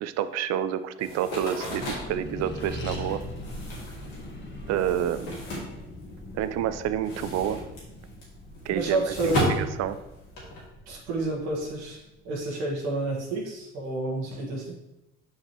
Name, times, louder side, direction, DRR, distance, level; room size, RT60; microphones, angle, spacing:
voice 1, 0.0-3.2 4.7-5.4 6.3-7.6 8.6-10.0, right 10 dB, 60° right, 13 dB, 0.5 m, -29 dB
sound 1, 1.0-6.4 6.7-10.6, equal, 85° left, 2.3 m, -34 dB
Accelerating revving vroom, 1.7-12.6, left 1 dB, 40° left, 1.5 m, -41 dB
voice 2, 8.7-9.5 10.9-14.8, right 2 dB, 80° right, -2 dB, 1.3 m, -30 dB
6.5 x 5.5 x 3.0 m, 0.95 s
hypercardioid pair, 60°, 29 cm